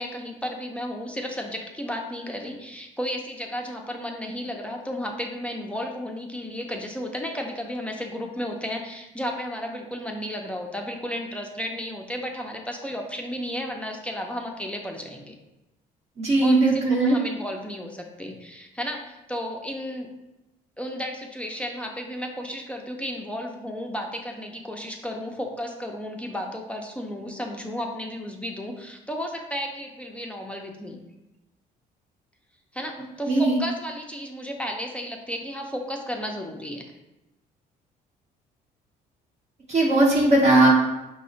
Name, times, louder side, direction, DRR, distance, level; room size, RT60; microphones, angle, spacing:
voice 1, 0.0-15.4 16.4-20.1 20.8-31.0 32.7-36.8, equal, 5° left, 1 dB, 0.4 m, -33 dB
voice 2, 16.2-17.2 33.3-33.6 39.7-40.7, right 2 dB, 40° right, -2 dB, 0.7 m, -18 dB
4.7 x 2.1 x 3.8 m, 0.97 s
cardioid pair, 110°, 17 cm